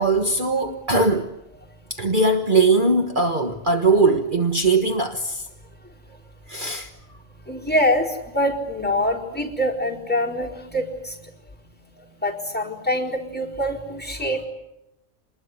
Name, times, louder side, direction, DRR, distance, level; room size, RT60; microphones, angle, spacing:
voice 1, 0.0-1.3 1.9-5.5 6.5-6.9, right 3 dB, 40° right, 1.6 m, -20 dB
voice 2, 7.5-11.1 12.2-14.5, equal, 5° left, 4.5 m, -24 dB
27.0 x 21.0 x 9.7 m
omnidirectional pair, 1.4 m